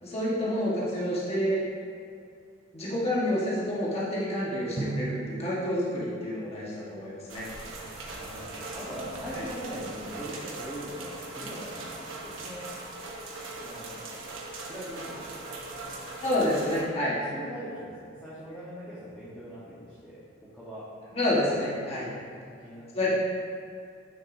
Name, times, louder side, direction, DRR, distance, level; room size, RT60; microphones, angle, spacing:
voice 1, 0.0-1.6 2.7-7.5 16.2-17.2 21.1-22.1 22.9-23.1, left 1 dB, 30° left, -7 dB, 1.4 m, -28 dB
Drum, 4.8-7.5, right 3 dB, 20° right, 0.5 m, -38 dB
sound 1, 7.3-16.8, right 2 dB, 85° right, 1.1 m, -40 dB
voice 2, 8.1-12.7 13.5-14.3 14.6-15.6 15.8-16.2 17.3-20.2 20.5-20.8 21.3-21.6 22.0-22.1 22.6-23.1, equal, 5° left, -10 dB, 1.2 m, -41 dB
9.1 x 6.5 x 2.7 m, 2.3 s
head